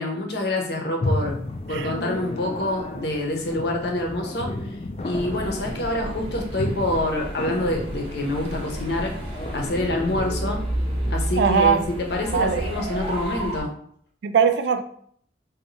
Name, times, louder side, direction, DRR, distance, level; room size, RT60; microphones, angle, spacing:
voice 1, 0.0-1.4 1.7-4.5 5.0-9.1 9.5-10.6 11.1-13.7, left 1 dB, 60° left, 0.7 m, -26 dB
sound 1, 1.0-11.1, left 2 dB, 30° left, 0.3 m, -33 dB
sound 2, 5.1-13.6, right 1 dB, 30° right, 0.7 m, -31 dB
voice 2, 11.4-11.8 12.3-12.7 14.2-14.8, right 6 dB, 70° right, 0.3 m, -20 dB
2.7 x 2.2 x 4.0 m
head